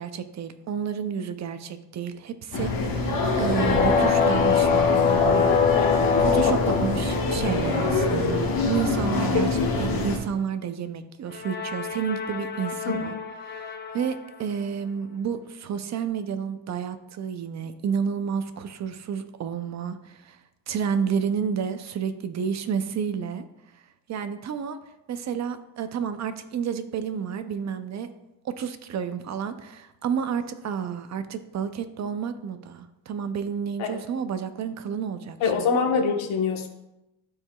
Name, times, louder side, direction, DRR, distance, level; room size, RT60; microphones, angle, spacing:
voice 1, 0.0-5.5 6.2-9.5 9.8-13.1 13.4-20.4 20.7-23.5 24.1-24.8 25.1-28.1 28.4-35.7, right 7 dB, 35° right, 10 dB, 0.5 m, -30 dB
sound 1, 2.5-10.2, left 3 dB, 45° left, 1.3 m, -25 dB
sound 2, 3.4-7.9 11.3-14.2, left 6 dB, 25° left, 0.4 m, -25 dB
voice 2, 6.4-6.8 7.7-7.8 9.3-9.5 9.8-9.9 12.9-13.1 33.8-33.9 35.4-36.7, left 5 dB, 70° left, 2 dB, 1.1 m, -25 dB
11.5 x 4.8 x 2.3 m, 0.92 s
cardioid pair, 130°, 49 cm